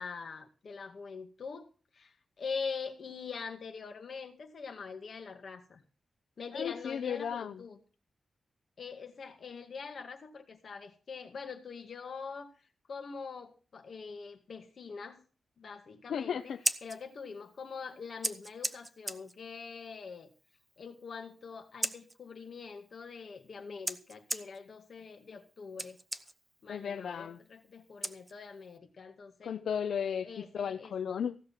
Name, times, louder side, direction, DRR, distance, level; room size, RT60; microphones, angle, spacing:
voice 1, 0.0-1.7 1.9-5.8 6.4-7.8 8.8-12.5 12.9-15.2 15.6-16.4 16.8-20.3 20.8-26.0 26.6-29.6 30.2-30.9, left 5 dB, 60° left, 6 dB, 2.0 m, -43 dB
voice 2, 6.5-7.6 16.1-16.6 26.7-27.4 29.4-31.4, left 7 dB, 85° left, 11 dB, 0.5 m, -35 dB
Scissors, 16.4-28.8, right 1 dB, 10° right, 0.8 m, -42 dB
16.0 x 6.6 x 7.3 m, 0.38 s
wide cardioid pair, 110°, 0 cm